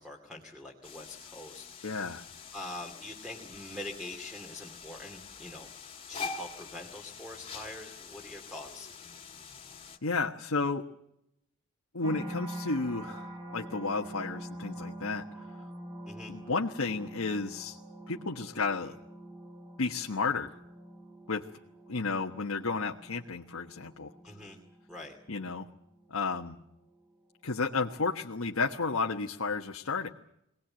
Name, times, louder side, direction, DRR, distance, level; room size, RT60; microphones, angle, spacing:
voice 1, 0.0-2.3 2.5-5.7 6.1-8.9 16.1-16.3 24.2-24.6 24.9-25.2, left 2 dB, 5° right, 3 dB, 2.5 m, -44 dB
sound 1, 0.8-10.0, left 5 dB, 25° left, 2.3 m, -45 dB
voice 2, 1.8-2.2 10.0-10.8 11.9-15.2 16.3-17.8 18.1-19.0 19.8-20.5 21.3-21.4 21.9-24.1 25.3-25.7 26.1-26.6 27.4-30.1, left 4 dB, 75° left, 1 dB, 1.3 m, -32 dB
sound 2, 12.0-27.2 27.7-28.2, right 1 dB, 20° right, 5.4 m, -46 dB
23.5 x 18.0 x 8.9 m, 0.79 s
head